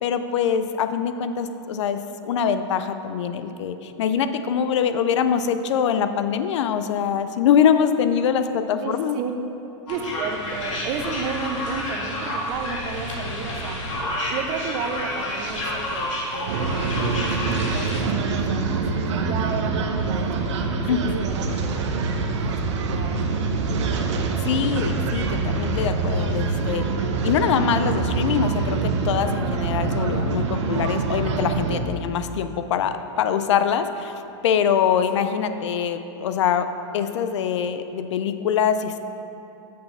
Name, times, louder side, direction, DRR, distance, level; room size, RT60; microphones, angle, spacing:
voice 1, 0.0-9.1 20.9-21.2 24.4-26.9 27.2-34.1 34.4-36.7 36.9-39.0, left 8 dB, 70° left, 10 dB, 0.5 m, -23 dB
voice 2, 8.8-9.3 9.9-13.9 14.3-16.7 17.1-22.0 22.3-23.5, right 6 dB, 25° right, 5 dB, 0.5 m, -33 dB
sound 1, 9.9-18.0, left 1 dB, 85° left, 1.9 m, -29 dB
sound 2, 16.5-31.8, right 4 dB, 70° right, 0.8 m, -25 dB
6.6 x 5.8 x 5.5 m, 2.9 s
supercardioid pair, 165°, 16 cm